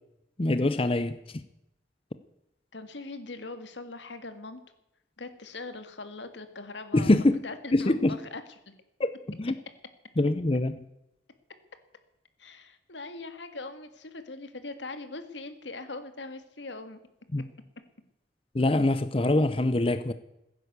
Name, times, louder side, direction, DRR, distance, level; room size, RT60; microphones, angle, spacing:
voice 1, 0.4-1.4 6.9-7.4 7.7-8.2 9.0-9.5 10.2-10.8 17.3-17.5 18.5-20.1, left 2 dB, 30° left, 0.6 m, -24 dB
voice 2, 2.7-4.6 5.2-7.2 7.4-8.7 12.4-17.0, left 3 dB, 85° left, 1.9 m, -41 dB
16.0 x 10.5 x 8.2 m
head